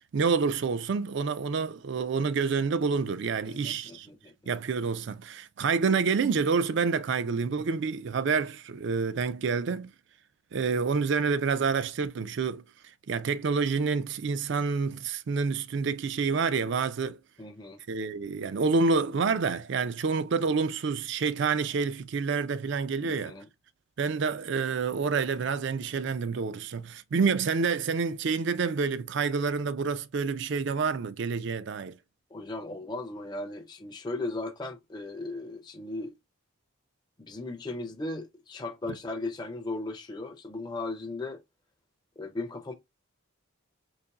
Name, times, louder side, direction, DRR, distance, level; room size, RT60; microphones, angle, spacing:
voice 1, 0.1-4.1 4.5-9.9 10.5-12.6 13.1-17.2 17.9-23.4 24.0-32.0, right 5 dB, 55° right, 0.4 m, -28 dB
voice 2, 3.4-4.3 17.4-17.8 23.0-23.5 32.3-36.1 37.2-41.4 42.2-42.7, left 2 dB, 20° left, 0.4 m, -37 dB
4.1 x 2.9 x 2.2 m
head